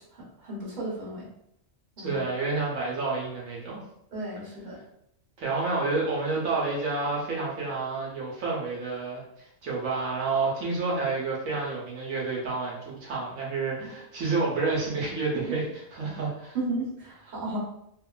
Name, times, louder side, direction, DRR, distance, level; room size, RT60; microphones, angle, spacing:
voice 1, 0.4-1.3 2.0-2.2 4.1-4.8 16.5-17.6, right 2 dB, 35° right, -7 dB, 1.0 m, -33 dB
voice 2, 2.0-3.8 5.4-16.6, right 3 dB, 80° right, -4 dB, 1.1 m, -29 dB
2.8 x 2.1 x 2.3 m, 0.77 s
omnidirectional pair, 1.4 m